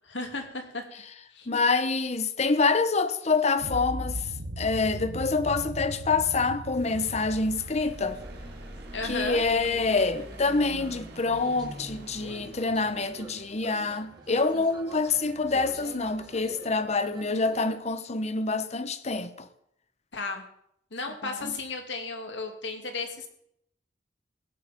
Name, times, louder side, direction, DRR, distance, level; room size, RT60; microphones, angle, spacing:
voice 1, 0.1-0.8 1.3-1.5 8.9-9.5 20.1-20.5 20.9-23.3, left 3 dB, 75° left, 2.4 m, -34 dB
voice 2, 1.5-4.3 4.6-8.2 9.0-19.5 21.2-21.5, left 3 dB, 35° left, 0.9 m, -26 dB
sound 1, 3.6-9.7, right 1 dB, 90° right, 1.2 m, -38 dB
sound 2, 6.7-16.4, right 1 dB, 60° right, 1.8 m, -47 dB
sound 3, 8.1-17.7, right 1 dB, 20° right, 1.8 m, -46 dB
16.5 x 9.8 x 5.2 m
head